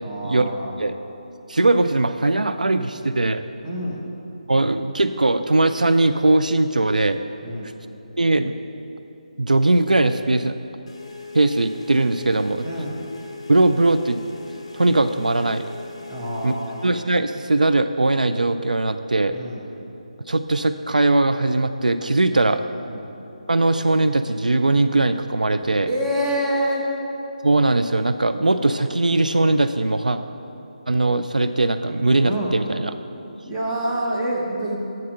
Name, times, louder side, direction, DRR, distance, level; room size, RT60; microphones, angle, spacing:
voice 1, 0.0-0.7 3.6-4.0 7.4-7.7 12.6-13.0 16.1-16.8 19.3-19.6 22.3-22.5 22.9-23.1 25.8-26.9 32.2-32.6 33.4-34.8, right 1 dB, 20° right, -3 dB, 1.2 m, -27 dB
voice 2, 1.5-3.4 4.5-7.2 8.2-8.5 9.4-10.5 11.3-12.7 13.5-14.2 14.7-15.6 16.4-16.5 16.8-19.3 20.3-22.6 23.5-25.9 27.4-30.2 30.9-32.9, right 2 dB, 90° right, 10 dB, 0.3 m, -20 dB
sound 1, 10.9-17.0, left 4 dB, 45° left, 0.7 m, -40 dB
7.6 x 5.7 x 6.5 m, 2.9 s
figure-of-eight pair, 155°, 4 cm